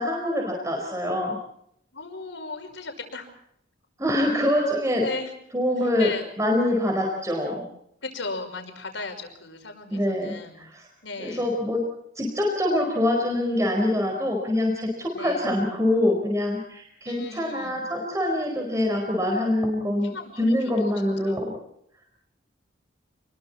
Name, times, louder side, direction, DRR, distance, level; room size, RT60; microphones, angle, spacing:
voice 1, 0.0-1.4 4.0-5.1 5.5-7.6 9.9-10.9 11.2-11.8 12.2-21.5, left 1 dB, 15° right, 1 dB, 4.8 m, -25 dB
voice 2, 1.9-3.3 4.9-5.4 6.0-6.3 8.0-10.7 11.0-11.5 15.1-15.5 17.1-17.8 20.0-20.9 21.2-21.4, left 3 dB, 70° left, 5 dB, 5.6 m, -36 dB
29.5 x 22.0 x 4.4 m, 0.73 s
head